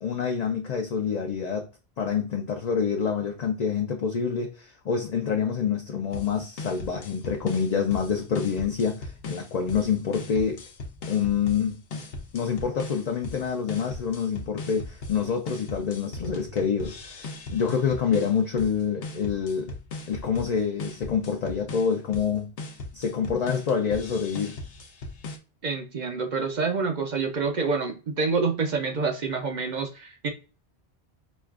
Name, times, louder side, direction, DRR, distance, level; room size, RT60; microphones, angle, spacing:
voice 1, 0.0-1.7 2.0-10.6 11.1-12.0 12.3-19.7 20.1-22.5 22.9-24.6, left 6 dB, 50° left, 0.5 m, -27 dB
sound 1, 6.1-25.4, left 2 dB, 70° left, 0.9 m, -39 dB
voice 2, 25.6-30.3, right 4 dB, 50° right, 0.6 m, -27 dB
5.1 x 2.4 x 2.3 m
omnidirectional pair, 1.1 m